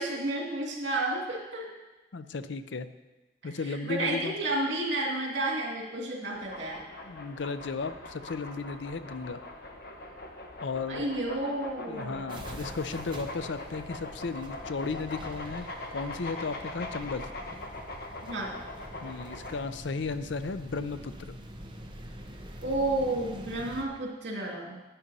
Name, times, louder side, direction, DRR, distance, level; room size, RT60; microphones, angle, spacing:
voice 1, 0.0-1.7 3.4-6.8 10.9-12.2 18.2-18.6 22.6-24.8, right 2 dB, 85° right, 0 dB, 2.5 m, -31 dB
voice 2, 2.1-2.9 3.4-4.4 7.1-9.4 10.6-11.1 11.9-15.7 15.9-17.3 19.0-21.4, left 4 dB, 85° left, 11 dB, 0.6 m, -35 dB
sound 1, 6.3-19.6, left 2 dB, 55° left, 1.1 m, -42 dB
sound 2, 12.3-23.8, right 1 dB, 25° right, 0.9 m, -46 dB
11.0 x 9.1 x 4.2 m, 1.1 s
head